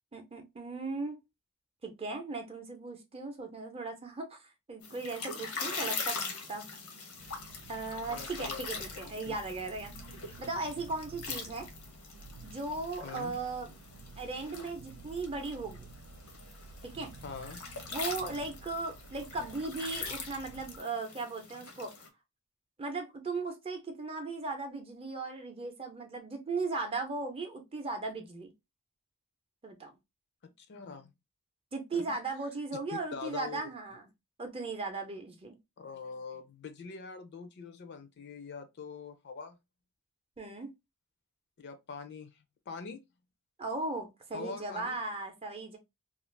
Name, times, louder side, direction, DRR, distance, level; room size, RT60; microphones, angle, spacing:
voice 1, 0.1-1.2 1.8-6.7 7.7-9.9 10.4-11.7 12.4-13.7 14.2-15.9 16.8-17.1 17.9-21.9 22.8-28.5 29.6-29.9 31.7-34.1 34.4-35.6 40.4-40.7 43.6-45.8, right 3 dB, 25° right, 0.6 m, -37 dB
sound 1, 4.8-22.1, left 4 dB, 85° left, 0.8 m, -42 dB
sound 2, 7.1-20.8, right 3 dB, 90° right, 0.4 m, -52 dB
voice 2, 8.1-8.6 9.0-9.3 13.0-13.4 17.2-17.6 30.4-31.1 31.9-32.2 32.9-33.6 35.8-39.6 41.6-43.0 44.3-45.0, left 5 dB, 50° left, 0.4 m, -44 dB
2.5 x 2.4 x 3.1 m
head